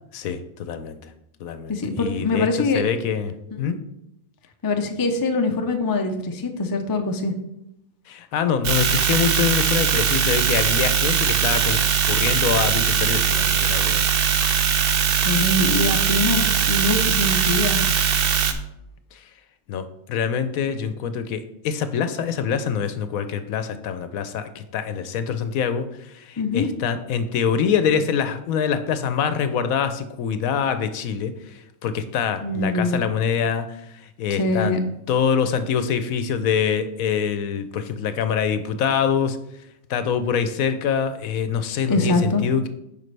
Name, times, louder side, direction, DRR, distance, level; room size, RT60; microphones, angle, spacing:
voice 1, 0.1-1.1 1.4-3.8 8.1-11.8 12.1-14.0 19.1-19.3 19.7-34.8 35.1-39.4 39.9-42.7, left 7 dB, 75° left, 10 dB, 1.1 m, -25 dB
voice 2, 1.7-2.8 3.6-3.7 4.6-7.3 15.1-17.8 26.4-26.7 32.4-33.0 34.4-34.8 41.9-42.4, left 2 dB, 30° left, 5 dB, 0.4 m, -23 dB
sound 1, 8.6-18.5, right 7 dB, 55° right, 0.7 m, -20 dB
9.1 x 5.3 x 3.3 m, 0.81 s
omnidirectional pair, 1.5 m